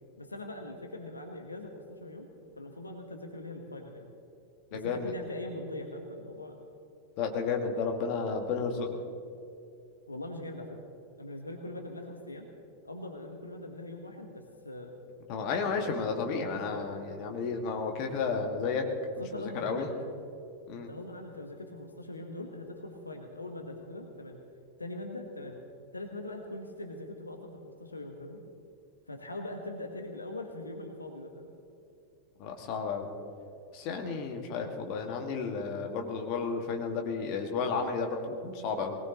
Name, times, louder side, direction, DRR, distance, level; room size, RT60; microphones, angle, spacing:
voice 1, 0.2-2.3 2.6-4.1 4.7-6.6 10.1-10.8 11.2-12.5 12.8-14.9 16.4-16.9 19.2-19.9 20.9-24.4 24.8-25.6 25.9-28.4 29.1-31.5, left 1 dB, 80° left, 3 dB, 1.3 m, -42 dB
voice 2, 4.7-5.1 7.2-9.0 15.3-18.8 19.3-19.9 20.7-20.9 32.4-33.1 33.7-39.0, left 5 dB, 45° left, 3 dB, 1.8 m, -32 dB
20.5 x 19.0 x 3.0 m, 2.5 s
figure-of-eight pair, 90°, 0 cm